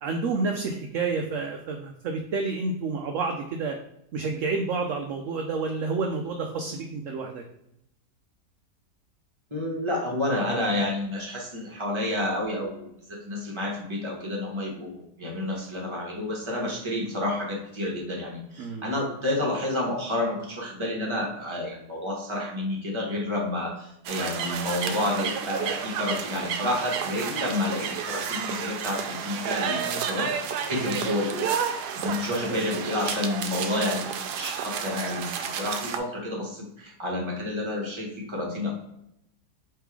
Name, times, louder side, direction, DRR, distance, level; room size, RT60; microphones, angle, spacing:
voice 1, 0.0-3.8 4.1-7.4 18.6-18.9 29.7-30.0, right 4 dB, 70° right, 3 dB, 0.8 m, -29 dB
voice 2, 9.5-31.5 31.9-34.1 34.3-38.7, left 1 dB, 20° right, -2 dB, 1.1 m, -30 dB
sound 1, 24.1-36.0, right 7 dB, 85° right, 1.2 m, -31 dB
3.5 x 3.2 x 4.7 m, 0.78 s
omnidirectional pair, 1.7 m